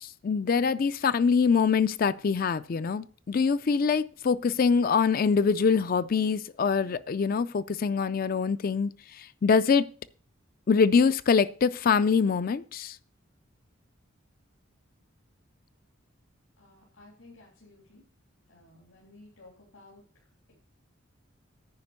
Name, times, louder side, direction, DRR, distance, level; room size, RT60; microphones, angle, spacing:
voice 1, 0.0-8.9 9.2-9.9 10.7-13.0, left 5 dB, 45° left, 0.4 m, -24 dB
voice 2, 16.6-18.0 18.5-20.5, left 2 dB, 90° left, 3.2 m, -55 dB
9.6 x 5.1 x 8.0 m
head